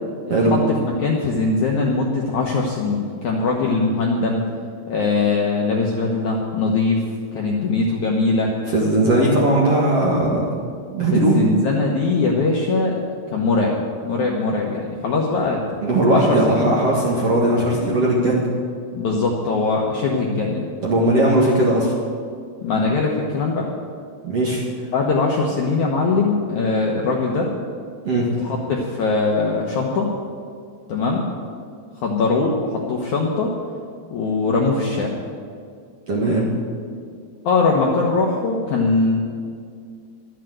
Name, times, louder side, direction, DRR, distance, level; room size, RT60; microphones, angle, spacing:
voice 1, 0.7-4.4 4.9-7.0 7.3-8.5 9.1-9.3 11.1-13.0 13.3-13.7 14.0-15.8 16.1-16.8 18.9-20.7 22.6-23.7 24.9-27.5 28.4-30.1 30.9-31.3 32.0-33.5 34.1-35.2 37.4-39.2, left 3 dB, 70° left, -1 dB, 1.9 m, -21 dB
voice 2, 8.7-10.5 10.9-11.4 15.8-18.5 20.8-21.9 24.2-24.6 28.1-28.4 36.1-36.5, right 1 dB, 50° right, -4 dB, 1.9 m, -18 dB
12.5 x 8.3 x 9.0 m, 2.2 s
omnidirectional pair, 4.9 m